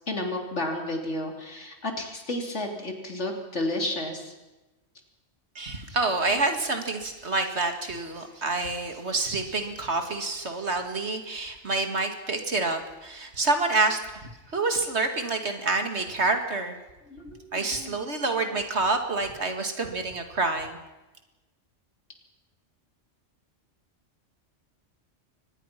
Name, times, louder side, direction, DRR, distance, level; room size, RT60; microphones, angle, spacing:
voice 1, 0.1-4.3 17.1-18.1, left 1 dB, 70° left, 3 dB, 3.5 m, -32 dB
voice 2, 5.6-16.8 17.5-20.8, right 3 dB, 65° right, 6 dB, 2.5 m, -28 dB
23.5 x 20.0 x 6.0 m, 1.1 s
omnidirectional pair, 1.2 m